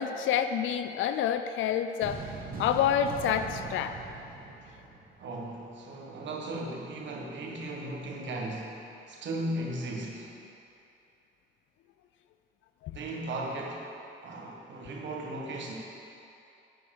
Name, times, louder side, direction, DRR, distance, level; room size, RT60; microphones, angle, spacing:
voice 1, 0.0-2.2 2.6-4.0 12.8-12.9, left 9 dB, 80° left, 9 dB, 0.5 m, -28 dB
sound 1, 2.0-5.5, right 4 dB, 50° right, 1.3 m, -41 dB
voice 2, 5.2-8.8 9.1-10.3 12.9-13.9 14.2-15.7, right 1 dB, 65° right, -2 dB, 1.5 m, -36 dB
9.4 x 4.6 x 6.5 m, 2.8 s
cardioid pair, 90°, 20 cm